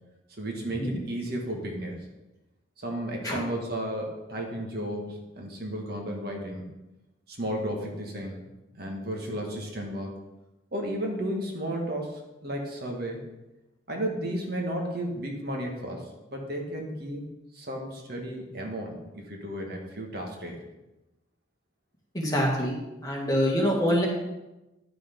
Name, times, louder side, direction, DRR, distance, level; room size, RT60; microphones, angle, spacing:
voice 1, 0.3-2.0 2.8-6.6 7.3-8.4 8.8-10.1 10.7-13.2 13.9-17.3 17.5-20.6, right 1 dB, 55° right, 1 dB, 1.7 m, -33 dB
voice 2, 22.1-22.8 23.0-24.1, equal, 20° left, -3 dB, 2.1 m, -25 dB
11.0 x 5.9 x 5.2 m, 1.0 s
head